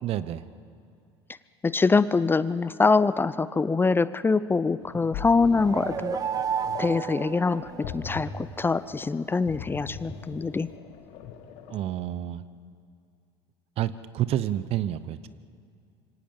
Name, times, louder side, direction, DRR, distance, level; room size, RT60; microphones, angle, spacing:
voice 1, 0.0-0.4 11.7-12.4 13.8-15.3, right 12 dB, 45° right, 16 dB, 0.9 m, -29 dB
voice 2, 1.6-6.2 6.8-10.7, left 4 dB, 15° left, 16 dB, 0.6 m, -24 dB
sound 1, 4.8-11.8, left 6 dB, 55° left, 2.2 m, -41 dB
sound 2, 5.4-8.3, right 8 dB, 25° right, 0.5 m, -32 dB
27.0 x 24.5 x 5.5 m, 2.3 s
figure-of-eight pair, 70°, 14 cm